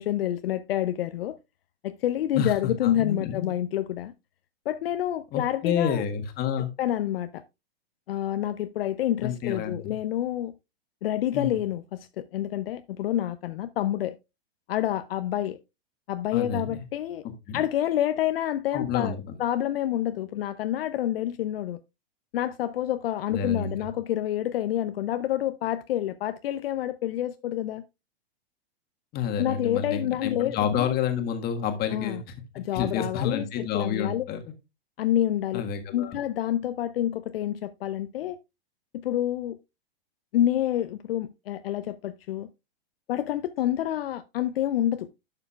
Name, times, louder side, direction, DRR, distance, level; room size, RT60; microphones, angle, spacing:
voice 1, 0.0-1.4 1.8-4.1 4.7-6.0 6.8-7.4 8.1-10.5 11.0-14.2 14.7-15.6 16.1-17.2 17.5-21.8 22.3-27.8 29.4-30.9 31.9-32.2 32.5-34.2 35.0-35.6 35.9-38.4 39.0-39.6 40.3-42.5 43.1-45.1, left 12 dB, 65° left, 0.6 m, -28 dB
voice 2, 2.3-3.5 5.3-6.7 9.2-9.9 11.3-11.6 16.3-16.8 17.5-17.6 18.7-19.4 23.3-23.9 29.1-32.2 32.7-34.4 35.5-36.2, left 7 dB, 30° left, 1.6 m, -29 dB
11.5 x 7.0 x 2.3 m
hypercardioid pair, 120°, 31 cm